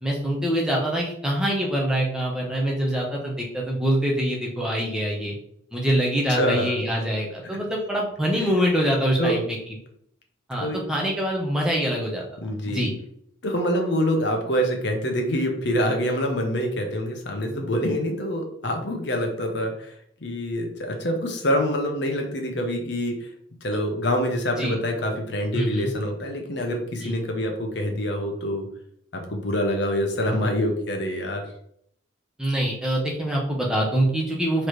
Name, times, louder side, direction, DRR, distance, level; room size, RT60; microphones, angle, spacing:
voice 1, 0.0-5.3 5.7-9.4 10.5-12.2 12.6-12.9 24.6-24.8 25.5-25.9 27.0-27.2 32.4-34.7, equal, 5° right, -2 dB, 0.8 m, -24 dB
voice 2, 6.3-6.8 9.2-9.4 10.6-10.8 12.4-12.9 13.4-19.9 20.2-23.3 23.6-28.7 29.1-31.4, equal, 60° left, 3 dB, 0.9 m, -25 dB
4.4 x 3.1 x 3.1 m, 0.69 s
head